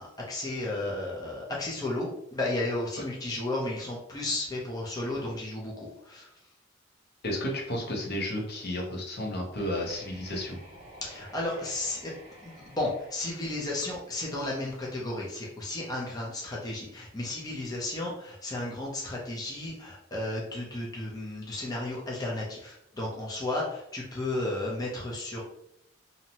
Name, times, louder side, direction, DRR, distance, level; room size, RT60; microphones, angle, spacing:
voice 1, 0.0-6.3 11.0-12.1 12.4-25.4, left 2 dB, 20° left, -4 dB, 0.5 m, -33 dB
voice 2, 7.2-10.6, left 1 dB, 55° left, -1 dB, 0.7 m, -32 dB
sound 1, 9.5-14.5, equal, 30° right, 1.0 m, -51 dB
2.7 x 2.0 x 2.8 m, 0.76 s
head